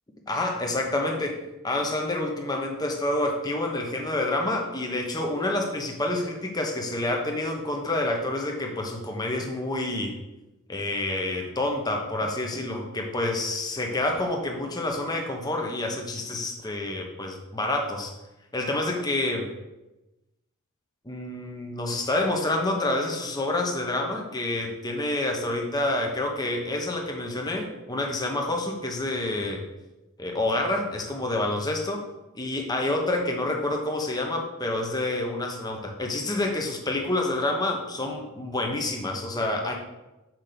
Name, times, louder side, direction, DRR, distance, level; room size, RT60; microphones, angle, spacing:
voice 1, 0.3-1.4 1.6-10.2 10.7-18.1 18.5-19.5 21.1-29.6 30.2-32.0 32.3-39.7, left 2 dB, 20° left, 1 dB, 1.1 m, -28 dB
6.1 x 5.3 x 6.9 m, 1.0 s
head